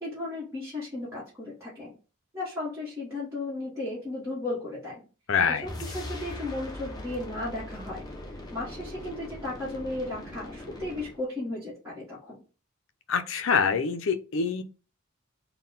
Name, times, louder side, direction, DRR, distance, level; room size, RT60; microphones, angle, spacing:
voice 1, 0.0-1.9 2.3-5.0 5.5-8.0 8.5-12.4, left 2 dB, 15° right, -7 dB, 1.2 m, -35 dB
voice 2, 5.3-5.7 13.1-14.6, left 6 dB, 65° left, 9 dB, 0.5 m, -25 dB
sound 1, 5.6-11.2, left 1 dB, 20° left, 0.6 m, -40 dB
3.8 x 2.2 x 3.9 m, 0.35 s
head